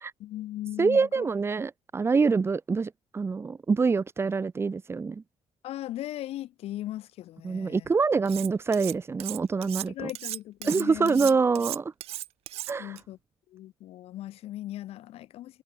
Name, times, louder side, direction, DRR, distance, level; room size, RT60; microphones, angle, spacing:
voice 1, 0.2-1.2 5.6-7.9 9.9-11.3 12.8-13.2 13.5-15.6, left 14 dB, 75° left, 3.7 m, -38 dB
voice 2, 0.8-5.2 7.4-10.1 10.6-11.9 12.7-13.0, right 4 dB, 25° right, 0.7 m, -25 dB
Cutlery silverware, 8.3-8.9 9.2-13.0, right 15 dB, 75° right, 1.5 m, -36 dB
cardioid pair, 100°, 10 cm